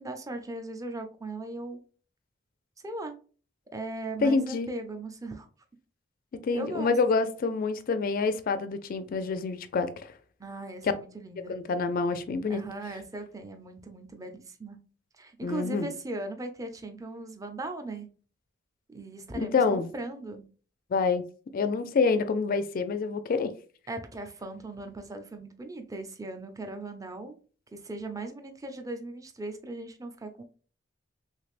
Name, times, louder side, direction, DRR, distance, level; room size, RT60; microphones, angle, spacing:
voice 1, 0.0-1.8 2.8-3.2 3.7-5.5 6.5-6.9 10.4-11.5 12.5-14.8 15.1-18.1 18.9-20.5 23.9-27.4 27.7-30.4, right 2 dB, 15° right, 0.4 m, -38 dB
voice 2, 4.2-4.7 6.4-10.1 11.5-12.6 15.4-15.9 19.3-19.9 20.9-21.2 21.5-23.5, left 4 dB, 45° left, 0.3 m, -27 dB
3.3 x 3.2 x 2.4 m
head